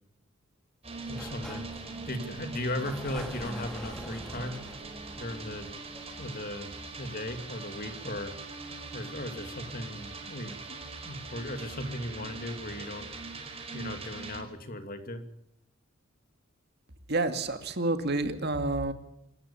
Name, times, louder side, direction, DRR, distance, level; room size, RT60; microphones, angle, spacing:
sound 1, 0.8-14.4, right 3 dB, 30° right, 4.8 m, -42 dB
Sliding door, 1.0-6.6, equal, 5° left, 2.5 m, -46 dB
voice 1, 1.1-1.7 2.1-4.6 5.2-5.7 6.2-6.7 7.0-8.3 8.9-13.1 13.7-15.2, left 1 dB, 45° left, 7 dB, 2.6 m, -37 dB
voice 2, 17.1-18.9, right 2 dB, 55° right, 8 dB, 2.2 m, -29 dB
26.0 x 14.5 x 7.0 m, 0.78 s
head